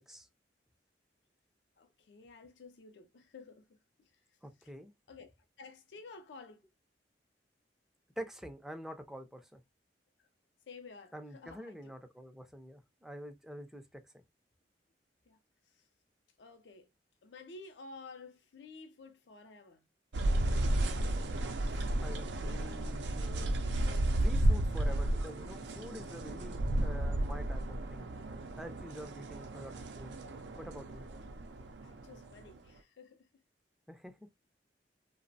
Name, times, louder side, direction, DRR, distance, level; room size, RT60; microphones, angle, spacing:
voice 1, 1.8-3.8 4.6-4.7 5.1-5.3 5.6-6.6 10.2-10.3 10.7-11.9 15.3-15.4 15.7-15.9 16.4-16.9 17.2-19.8 31.8-33.3, left 4 dB, 80° left, 0.4 m, -52 dB
voice 2, 4.4-4.9 8.2-9.6 11.1-14.2 22.0-23.5 24.2-28.1 28.6-30.2 30.6-31.0 33.9-34.2, equal, 5° right, 0.4 m, -47 dB
sound 1, 20.1-32.6, right 1 dB, 75° right, 0.5 m, -33 dB
2.9 x 2.0 x 2.6 m
head